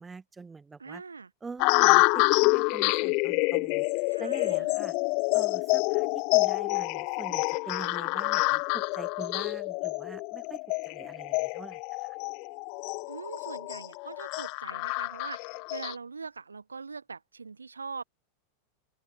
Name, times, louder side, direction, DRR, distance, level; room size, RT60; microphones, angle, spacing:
voice 1, 0.0-1.0 1.4-3.9 4.2-4.9 5.3-12.2, right 4 dB, 15° right, 6.6 m, -44 dB
voice 2, 0.8-1.3 4.1-4.8 13.1-18.0, right 4 dB, 75° right, 6.7 m, -42 dB
sound 1, 1.6-15.9, left 34 dB, 45° left, 0.4 m, -27 dB
open air
figure-of-eight pair, 90°, 0 cm